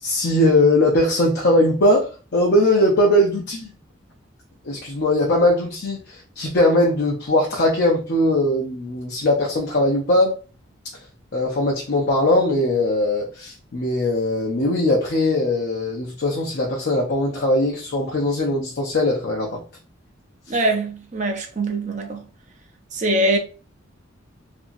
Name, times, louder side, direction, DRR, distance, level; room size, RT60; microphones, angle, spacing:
voice 1, 0.0-3.7 4.6-10.4 11.3-19.6, left 1 dB, 55° left, 0.6 m, -20 dB
voice 2, 20.5-22.2 22.9-23.4, right 1 dB, 40° right, 0.6 m, -22 dB
2.8 x 2.6 x 2.5 m
head